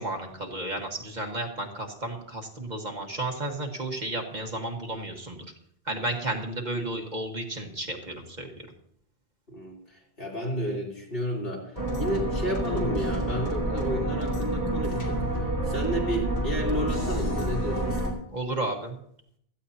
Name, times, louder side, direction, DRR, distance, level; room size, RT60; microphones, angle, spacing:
voice 1, 0.0-5.5 5.9-8.7 18.3-19.0, right 2 dB, 45° right, 2 dB, 1.6 m, -33 dB
voice 2, 9.5-18.0, equal, 65° left, -4 dB, 3.8 m, -32 dB
sound 1, 11.8-18.1, right 1 dB, 35° left, 2.7 m, -28 dB
16.5 x 13.5 x 2.8 m, 0.68 s
omnidirectional pair, 1.0 m